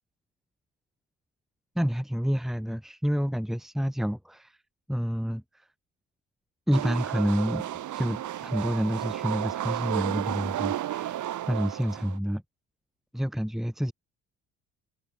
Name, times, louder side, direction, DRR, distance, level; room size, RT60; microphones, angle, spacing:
voice 1, 1.8-4.6 4.9-5.7 6.7-12.4 13.1-13.9, equal, ahead, 1.9 m, -29 dB
sound 1, 6.7-12.2, right 12 dB, 75° right, 4.4 m, -32 dB
cardioid pair, 90°, 30 cm